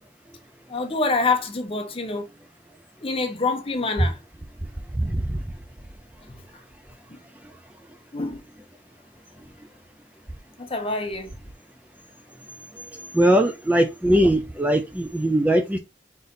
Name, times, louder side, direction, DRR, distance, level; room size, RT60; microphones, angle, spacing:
voice 1, 0.7-2.3 3.0-4.2 6.3-6.4 7.1-7.2 8.1-8.4 10.6-11.3, left 3 dB, 30° left, 0.9 m, -26 dB
voice 2, 5.0-5.4 13.1-15.8, right 1 dB, 10° right, 0.5 m, -20 dB
3.9 x 3.9 x 2.6 m
head